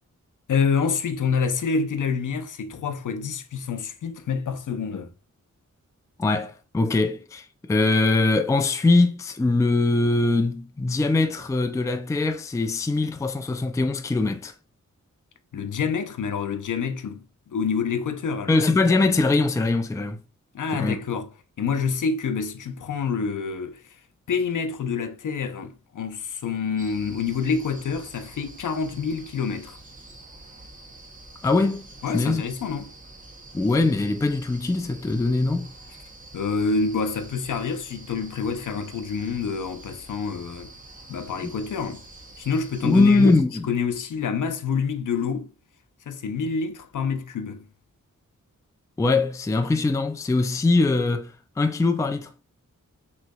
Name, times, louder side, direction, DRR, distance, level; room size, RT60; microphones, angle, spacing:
voice 1, 0.5-5.1 15.5-18.6 20.5-21.3 21.6-23.8 24.3-29.8 32.0-32.9 36.3-40.7 41.1-42.0 42.4-43.3 43.7-45.5 46.1-47.7, left 5 dB, 80° left, 0.6 m, -27 dB
voice 2, 6.2-14.5 18.5-20.2 20.7-21.0 31.4-31.8 32.1-32.4 33.5-35.7 41.4-41.5 42.8-43.7 49.0-52.3, left 3 dB, 10° left, 0.3 m, -22 dB
sound 1, 26.8-43.4, right 2 dB, 25° right, 0.8 m, -46 dB
6.3 x 3.1 x 2.3 m
wide cardioid pair, 130°, 30 cm